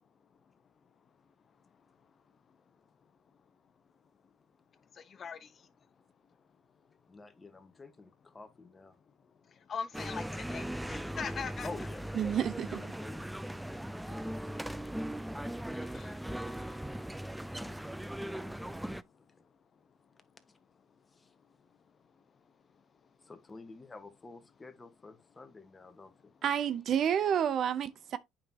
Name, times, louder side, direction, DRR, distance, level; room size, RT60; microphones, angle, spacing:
voice 1, 7.1-9.0 11.6-12.4 12.8-13.2 14.1-15.0 17.5-18.8 20.5-20.6 21.2-21.3 23.2-26.3, left 3 dB, 20° left, 1.4 m, -50 dB
voice 2, 9.7-10.2 10.5-11.9 15.8-16.1, left 6 dB, 40° left, 1.1 m, -40 dB
sound 1, 9.9-19.0, equal, 5° right, 0.4 m, -39 dB
voice 3, 12.1-12.8 26.4-28.2, right 9 dB, 50° right, 0.6 m, -29 dB
8.6 x 5.7 x 2.9 m
supercardioid pair, 85°, 0 cm